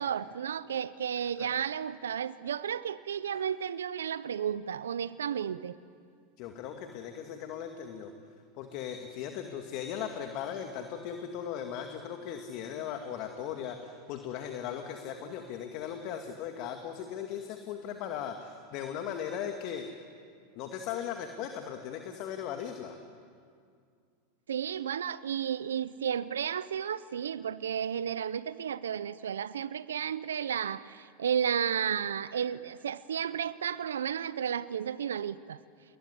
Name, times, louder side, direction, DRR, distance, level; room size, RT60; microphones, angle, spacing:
voice 1, 0.0-5.7 24.5-35.6, right 8 dB, 85° right, 16 dB, 0.7 m, -33 dB
voice 2, 6.4-8.1 8.6-19.9 20.6-23.0, left 8 dB, 55° left, 5 dB, 2.2 m, -38 dB
28.0 x 21.0 x 10.0 m, 2.2 s
hypercardioid pair, 95°, 0 cm